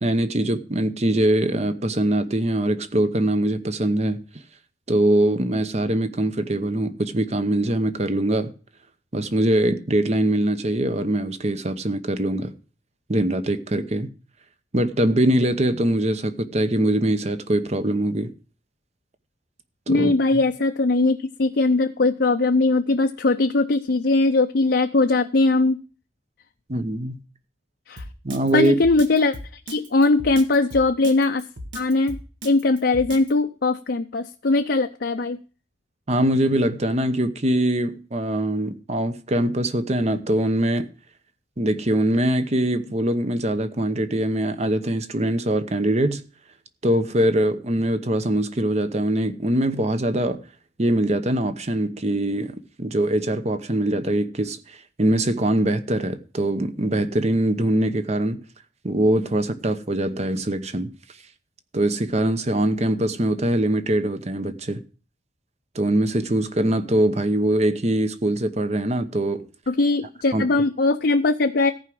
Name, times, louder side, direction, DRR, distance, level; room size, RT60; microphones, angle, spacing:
voice 1, 0.0-4.2 4.9-8.5 9.1-12.5 13.1-14.1 14.7-18.3 19.9-20.5 26.7-27.2 28.2-28.8 36.1-40.9 41.6-46.2 46.8-50.4 50.8-58.4 58.8-60.9 61.7-64.8 65.7-69.5 70.3-70.5, right 1 dB, 35° right, 0.9 m, -22 dB
voice 2, 19.9-25.8 27.9-28.0 28.5-29.3 29.7-31.4 31.7-32.2 32.4-35.4 69.7-71.7, left 3 dB, 60° left, 0.6 m, -20 dB
Drum kit, 28.0-33.3, equal, 85° right, 1.7 m, -36 dB
14.5 x 4.9 x 7.7 m
head